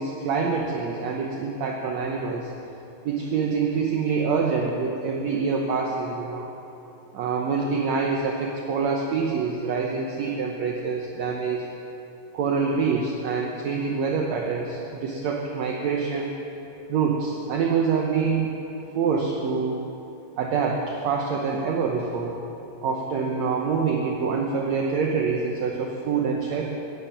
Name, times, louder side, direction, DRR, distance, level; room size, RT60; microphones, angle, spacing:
voice 1, 0.0-2.5 3.1-6.5 7.1-11.7 12.3-16.3 16.9-18.5 18.9-19.8 20.4-22.4 22.8-26.6, right 5 dB, 65° right, 0 dB, 1.9 m, -26 dB
15.0 x 10.0 x 7.3 m, 2.9 s
omnidirectional pair, 3.8 m